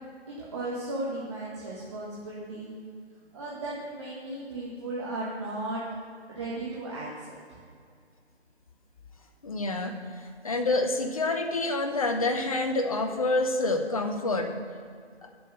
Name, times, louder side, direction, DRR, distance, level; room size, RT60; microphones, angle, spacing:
voice 1, 0.3-2.7 3.3-5.8 6.3-7.3, right 2 dB, 25° right, -6 dB, 1.6 m, -35 dB
voice 2, 9.4-10.0 10.4-14.5, left 2 dB, 30° left, 5 dB, 1.0 m, -27 dB
9.8 x 7.5 x 6.7 m, 2.2 s
figure-of-eight pair, 150°, 33 cm